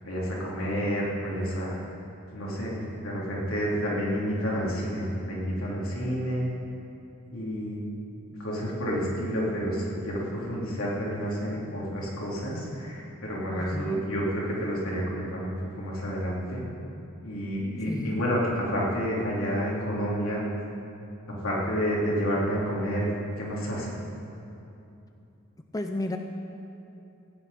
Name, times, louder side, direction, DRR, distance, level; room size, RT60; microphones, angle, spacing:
voice 1, 0.0-1.8 2.3-6.5 7.3-7.8 8.4-16.6 17.2-20.4 21.4-23.1 23.4-24.0, equal, 85° left, -4 dB, 3.2 m, -29 dB
voice 2, 13.5-14.1 17.9-18.2 25.7-26.2, left 1 dB, 15° left, 5 dB, 0.5 m, -32 dB
15.5 x 6.5 x 9.1 m, 2.8 s
head